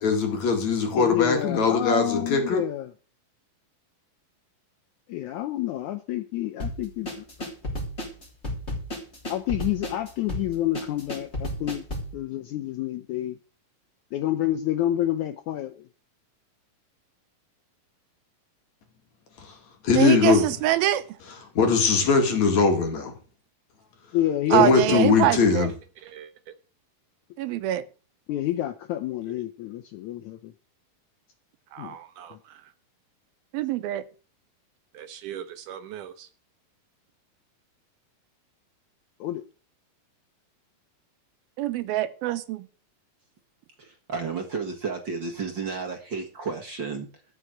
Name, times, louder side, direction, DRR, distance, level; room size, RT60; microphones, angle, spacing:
voice 1, 0.0-2.6 19.8-20.5 21.6-23.1 24.5-25.7, left 5 dB, 55° left, 3.3 m, -21 dB
voice 2, 0.9-2.9 5.1-7.5 9.3-11.9 12.1-13.4 14.1-15.8 24.1-25.0 28.3-30.5 31.8-32.0 32.3-32.4 39.2-39.4, left 13 dB, 75° left, 1.8 m, -29 dB
sound 1, 6.6-12.1, equal, 20° left, 3.6 m, -33 dB
voice 3, 20.0-21.0 24.5-25.7 27.4-27.8 33.5-34.0 41.6-42.7, right 13 dB, 90° right, 2.7 m, -24 dB
voice 4, 26.0-26.5 31.7-32.7 34.9-36.3, right 10 dB, 70° right, 2.2 m, -40 dB
voice 5, 43.8-47.3, right 5 dB, 45° right, 1.7 m, -32 dB
13.5 x 6.0 x 7.9 m
omnidirectional pair, 4.1 m